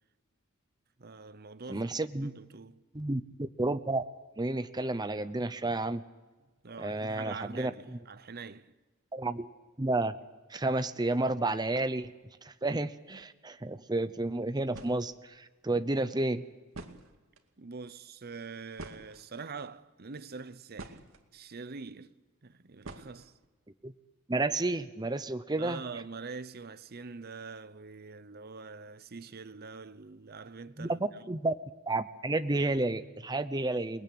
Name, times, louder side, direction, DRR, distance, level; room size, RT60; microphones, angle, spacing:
voice 1, 1.0-1.9 2.2-2.8 6.6-8.7 17.6-21.0 21.3-22.1 22.4-23.3 25.6-31.0, right 4 dB, 50° right, 0.8 m, -44 dB
voice 2, 1.7-2.3 2.9-4.0 4.4-6.0 6.8-8.0 9.1-9.5 9.8-10.2 10.5-12.1 12.4-16.4 23.8-23.9 24.3-25.8 30.8-31.0 31.3-31.5 31.9-34.0, right 2 dB, 20° right, 0.8 m, -31 dB
sound 1, 14.4-14.5 14.7-15.1 16.3-16.4 16.7-17.5 18.8-19.6 20.3-21.2 22.8-23.5, right 2 dB, 75° right, 2.2 m, -46 dB
29.0 x 20.5 x 8.7 m
head